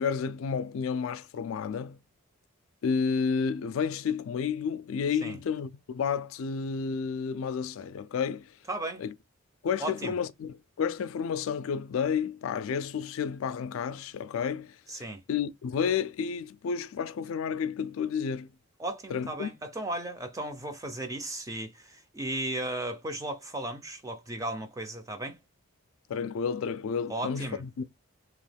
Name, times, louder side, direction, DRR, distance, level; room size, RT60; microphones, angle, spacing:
voice 1, 0.0-2.0 2.8-8.5 9.0-9.1 9.6-15.0 15.3-18.5 19.1-19.5 26.1-27.8, left 6 dB, 75° left, 0.3 m, -31 dB
voice 2, 8.7-9.0 9.8-10.1 14.9-15.2 18.8-25.4 27.1-27.6, right 1 dB, 15° right, 0.4 m, -35 dB
2.9 x 2.2 x 3.3 m
head